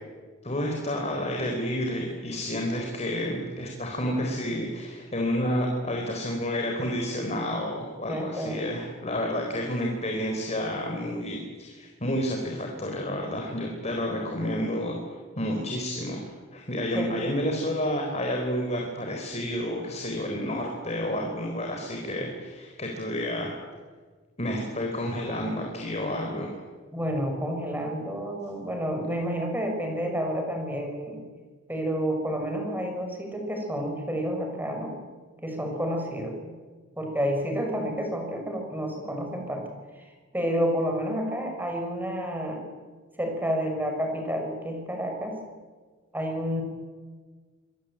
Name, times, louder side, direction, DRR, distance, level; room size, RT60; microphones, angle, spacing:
voice 1, 0.4-15.0 15.4-23.5 24.4-26.5, equal, 35° left, 1 dB, 4.3 m, -30 dB
voice 2, 8.1-8.7 16.9-17.1 26.9-31.2 31.7-34.9 35.4-36.3 37.0-39.7 39.9-40.0 40.3-42.6 43.2-45.4 46.1-46.6, equal, 10° right, 3 dB, 6.1 m, -30 dB
26.0 x 21.5 x 8.9 m, 1.4 s
head